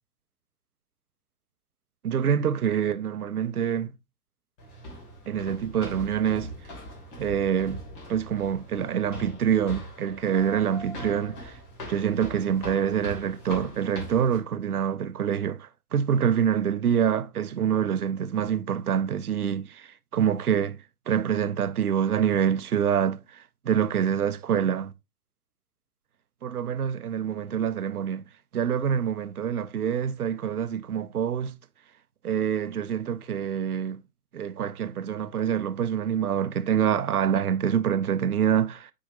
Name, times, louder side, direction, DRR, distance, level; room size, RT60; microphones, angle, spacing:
voice 1, 2.0-3.9 5.3-6.5 7.2-7.8 8.1-11.5 11.9-20.8 21.1-24.9 26.4-28.2 28.5-31.5 32.2-34.0 34.3-38.9, right 8 dB, 75° right, 0.7 m, -26 dB
sound 1, 4.6-14.4, equal, 35° left, 2.7 m, -41 dB
8.6 x 4.9 x 2.7 m
figure-of-eight pair, 115°, 46 cm